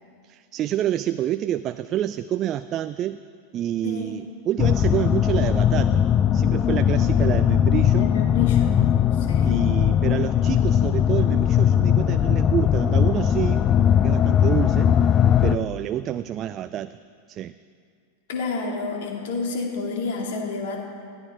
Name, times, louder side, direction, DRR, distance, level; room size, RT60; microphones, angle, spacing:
voice 1, 0.2-3.2 3.5-6.1 6.3-8.1 9.4-13.7 13.9-14.9 15.4-17.0 17.3-17.5, right 11 dB, 30° right, 12 dB, 0.4 m, -28 dB
voice 2, 3.8-4.1 7.9-8.8 9.3-9.6 18.3-20.8, left 3 dB, 55° left, 1 dB, 2.6 m, -30 dB
sound 1, 4.6-15.6, left 9 dB, 30° left, 0.5 m, -19 dB
20.5 x 15.0 x 4.4 m, 2.3 s
figure-of-eight pair, 90°, 0 cm